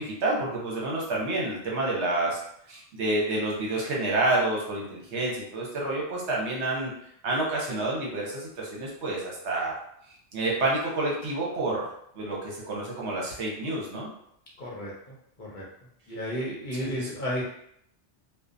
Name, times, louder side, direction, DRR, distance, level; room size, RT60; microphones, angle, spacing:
voice 1, 0.0-2.4 2.7-6.9 7.2-9.7 10.3-11.9 12.2-14.1 16.7-17.1, right 2 dB, 75° right, -3 dB, 1.0 m, -29 dB
voice 2, 14.6-14.9 15.4-15.6 16.1-17.4, equal, 50° left, -5 dB, 0.7 m, -32 dB
2.7 x 2.1 x 2.5 m, 0.72 s
omnidirectional pair, 1.2 m